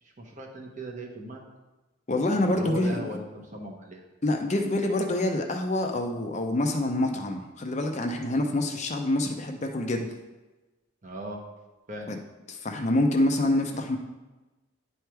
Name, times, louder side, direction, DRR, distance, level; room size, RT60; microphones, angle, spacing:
voice 1, 0.2-1.4 2.4-4.0 11.0-11.4 11.9-12.1, right 1 dB, 35° right, 1 dB, 1.0 m, -37 dB
voice 2, 2.1-3.1 4.2-10.1 12.1-12.2 12.5-14.0, left 1 dB, 35° left, 3 dB, 0.6 m, -26 dB
10.0 x 3.4 x 4.5 m, 1.1 s
head